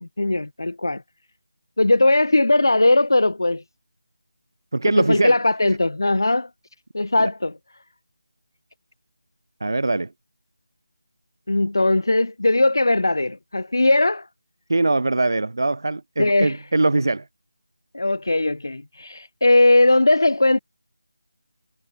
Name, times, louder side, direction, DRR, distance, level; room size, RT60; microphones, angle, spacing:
voice 1, 0.2-1.0 1.8-3.6 4.9-6.5 6.9-7.5 11.5-14.3 16.2-16.6 17.9-20.6, left 2 dB, 80° left, 1.2 m, -19 dB
voice 2, 4.7-5.4 7.2-7.3 9.6-10.1 14.7-17.2, right 2 dB, 70° right, 3.1 m, -22 dB
figure-of-eight pair, 170°, 2 cm